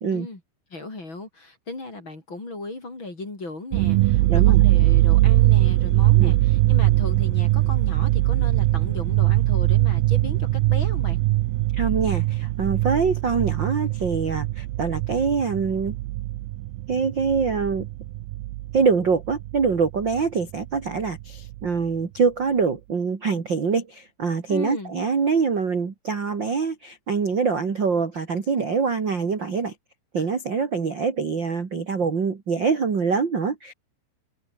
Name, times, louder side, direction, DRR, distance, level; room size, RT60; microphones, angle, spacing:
voice 1, 0.1-0.4 0.7-11.2 24.5-24.9, left 2 dB, 25° left, 5.7 m, -36 dB
sound 1, 3.7-18.8 19.1-20.2 20.5-20.6 21.0-21.6, right 18 dB, 85° right, 2.1 m, -21 dB
voice 2, 4.3-4.6 6.2-6.3 11.7-15.9 16.9-17.9 18.7-29.7 30.1-33.7, right 5 dB, 35° right, 2.2 m, -24 dB
omnidirectional pair, 5.3 m